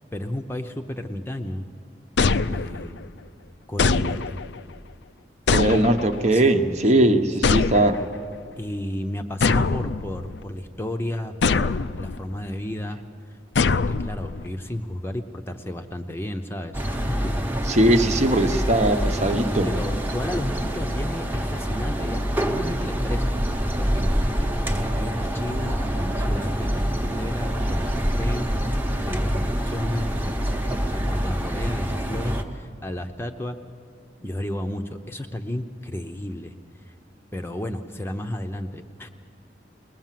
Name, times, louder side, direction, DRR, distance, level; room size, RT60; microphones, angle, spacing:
voice 1, 0.1-1.7 2.2-3.0 3.7-4.4 6.3-6.5 6.9-7.1 7.4-7.6 8.6-13.0 13.6-17.5 19.6-23.4 23.8-28.5 29.0-33.6 34.2-36.5 37.3-39.1, left 1 dB, 15° left, 5 dB, 0.8 m, -32 dB
sound 1, 2.2-3.1 3.8-4.6 5.5-6.3 7.4-8.2 9.4-10.4 11.4-12.2 13.6-14.5, left 4 dB, 75° left, 0.5 m, -23 dB
voice 2, 5.5-8.0 17.7-19.7, right 1 dB, 40° right, 6 dB, 1.0 m, -20 dB
sound 2, 16.7-32.4, equal, 10° right, 1.1 m, -26 dB
22.5 x 20.0 x 7.6 m, 2.2 s
head